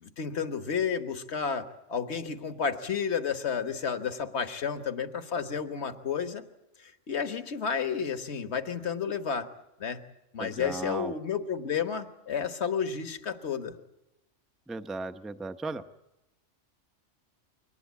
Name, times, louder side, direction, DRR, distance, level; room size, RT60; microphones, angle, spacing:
voice 1, 0.0-6.4 6.8-9.5 9.8-10.0 10.3-13.7, left 6 dB, 65° left, 9 dB, 1.6 m, -31 dB
voice 2, 10.4-11.1 14.7-15.8, right 3 dB, ahead, 8 dB, 0.6 m, -36 dB
23.0 x 19.0 x 8.3 m, 0.92 s
omnidirectional pair, 1.2 m